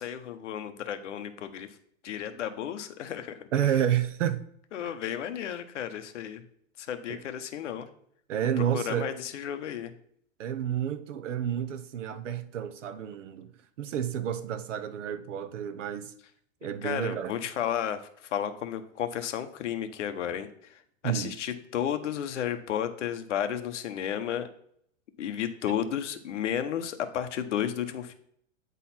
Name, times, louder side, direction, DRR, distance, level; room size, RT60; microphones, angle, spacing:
voice 1, 0.0-1.7 2.0-3.7 4.7-6.4 6.8-7.9 8.7-9.9 16.8-18.0 18.3-24.5 25.2-28.1, left 9 dB, 65° left, 0.9 m, -33 dB
voice 2, 3.5-4.4 7.1-7.2 8.3-9.1 10.4-13.5 13.8-16.1 16.6-17.3 21.0-21.3, right 9 dB, 65° right, 0.8 m, -30 dB
9.1 x 4.0 x 4.2 m
supercardioid pair, 175°, 39 cm